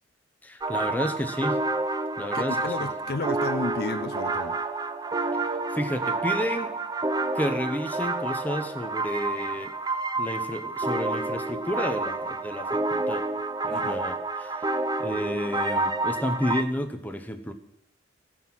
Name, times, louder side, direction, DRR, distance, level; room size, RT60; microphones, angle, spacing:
voice 1, 0.4-1.6 2.2-2.9 5.4-6.8 7.3-9.7 10.2-13.2 13.6-14.7 15.0-17.5, equal, 10° left, 0.9 m, -31 dB
sound 1, 0.6-16.6, right 2 dB, 20° right, 0.6 m, -29 dB
voice 2, 2.3-4.6 13.7-14.0, left 3 dB, 55° left, 0.6 m, -32 dB
17.0 x 5.7 x 6.1 m
head